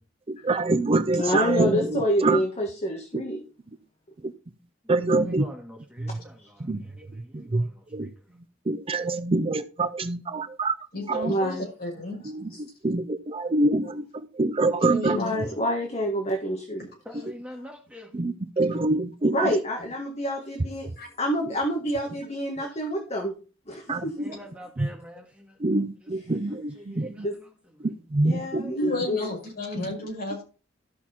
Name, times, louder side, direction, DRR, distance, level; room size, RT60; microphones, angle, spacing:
voice 1, 0.3-2.4 3.1-3.2 4.2-4.3 4.9-5.5 6.0-6.1 6.6-6.8 7.3-7.7 7.9-8.1 8.7-10.8 11.1-11.3 12.2-14.1 14.4-15.2 18.1-19.5 23.9-24.0 24.8-24.9 25.6-27.3 27.8-28.9 29.8-29.9, right 2 dB, 30° right, 11 dB, 0.6 m, -25 dB
voice 2, 1.1-3.4 6.1-6.2 6.4-6.5 11.2-11.7 15.1-16.9 19.3-20.9 21.2-23.4 23.7-24.1 27.2-27.4 28.2-28.8 29.1-29.3, equal, 35° left, 3 dB, 1.5 m, -27 dB
voice 3, 5.1-8.1 17.1-18.1 24.2-25.7 26.5-27.3 27.9-28.0, left 1 dB, 5° right, 2 dB, 2.0 m, -45 dB
voice 4, 10.9-12.2 12.5-12.6 14.8-15.3 21.0-21.1 28.7-30.4, left 1 dB, 55° left, -1 dB, 5.9 m, -31 dB
13.5 x 6.0 x 4.3 m, 0.35 s
head